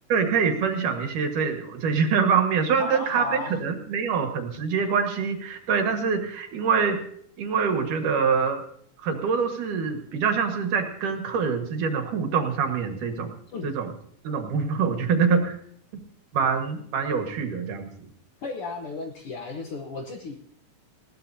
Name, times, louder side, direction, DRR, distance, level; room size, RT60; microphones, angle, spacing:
voice 1, 0.1-7.0 7.4-8.6 9.0-13.3 13.6-13.9 14.2-15.6 16.3-18.1, right 6 dB, 75° right, 5 dB, 3.2 m, -25 dB
voice 2, 2.8-3.5 13.5-13.7 18.4-20.4, left 3 dB, 60° left, 2 dB, 1.5 m, -34 dB
20.5 x 16.5 x 2.8 m, 0.63 s
omnidirectional pair, 3.7 m